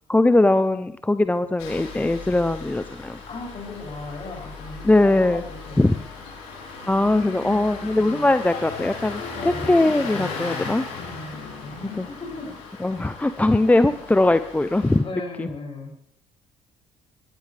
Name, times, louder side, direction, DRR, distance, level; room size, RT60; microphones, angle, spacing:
voice 1, 0.1-3.2 4.8-5.4 5.8-5.9 6.9-10.9 12.0-12.1 12.8-15.0 15.4-15.5, left 2 dB, 10° left, 11 dB, 0.6 m, -20 dB
Engine starting, 1.6-15.0, left 4 dB, 80° left, 3.6 m, -37 dB
voice 2, 3.3-6.0 6.8-8.3 9.3-9.8 11.0-12.5 13.7-13.9 15.0-16.0, left 2 dB, 45° left, -1 dB, 7.0 m, -38 dB
sound 1, 6.3-13.0, left 6 dB, 65° left, 1.9 m, -42 dB
20.5 x 12.5 x 3.4 m, 0.68 s
hypercardioid pair, 60°, 13 cm